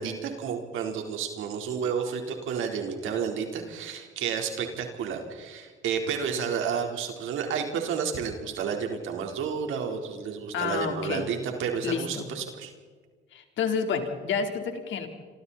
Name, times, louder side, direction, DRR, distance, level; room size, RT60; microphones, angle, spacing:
voice 1, 0.0-12.7, right 6 dB, 85° right, 3 dB, 4.1 m, -31 dB
voice 2, 10.5-11.3 11.8-12.3 13.3-15.1, left 6 dB, 75° left, 4 dB, 3.9 m, -29 dB
27.5 x 27.0 x 4.3 m, 1.5 s
cardioid pair, 90°, 20 cm